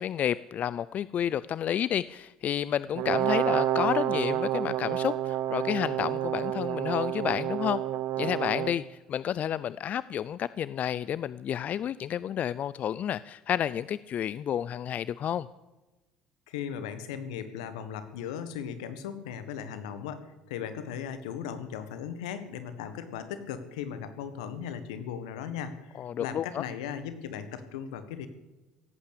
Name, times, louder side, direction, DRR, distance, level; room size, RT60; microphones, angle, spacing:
voice 1, 0.0-7.8 8.2-15.5 26.0-26.6, left 10 dB, 50° left, 18 dB, 0.4 m, -30 dB
Brass instrument, 3.0-8.8, right 13 dB, 70° right, 0.9 m, -29 dB
voice 2, 16.5-28.3, left 8 dB, 85° left, 11 dB, 1.5 m, -37 dB
17.0 x 8.7 x 8.5 m, 1.1 s
hypercardioid pair, 75°, 3 cm